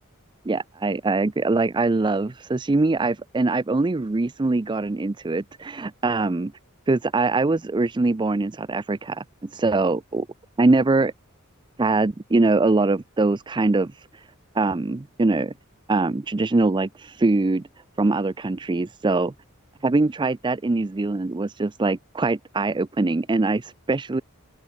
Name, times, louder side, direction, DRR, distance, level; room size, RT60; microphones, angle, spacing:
voice 1, 0.5-6.5 6.9-10.2 10.6-11.1 11.8-14.3 14.5-15.5 15.9-17.6 18.0-19.3 19.8-24.2, right 3 dB, 20° right, 0.4 m, -23 dB
open air
head